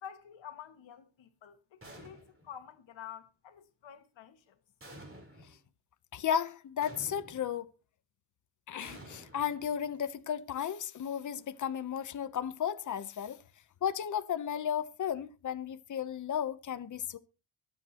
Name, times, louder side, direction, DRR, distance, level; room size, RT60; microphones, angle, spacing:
voice 1, 0.0-4.6, left 9 dB, 90° left, 1.9 m, -49 dB
sound 1, 1.8-2.6 4.8-5.6 6.8-7.6 8.8-10.0, right 1 dB, 30° right, 4.0 m, -51 dB
voice 2, 6.1-7.7 8.7-13.4 13.8-17.2, left 8 dB, 40° left, 0.8 m, -34 dB
23.5 x 8.7 x 2.9 m
wide cardioid pair, 140°, 44 cm